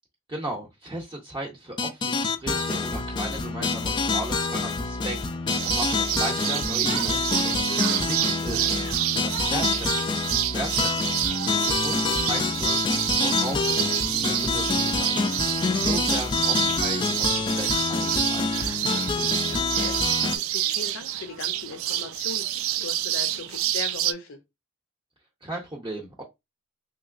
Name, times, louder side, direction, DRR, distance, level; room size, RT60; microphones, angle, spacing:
voice 1, 0.3-7.6 8.1-8.7 9.0-10.2 10.5-12.8 13.2-15.2 15.8-18.5 25.4-26.2, right 1 dB, 25° right, 0.6 m, -36 dB
sound 1, 1.8-20.4, left 4 dB, 25° left, 0.3 m, -27 dB
sound 2, 5.5-24.1, right 12 dB, 90° right, 0.3 m, -28 dB
voice 2, 7.7-8.2 18.9-24.4, left 4 dB, 80° left, 0.6 m, -39 dB
3.0 x 2.9 x 2.4 m
head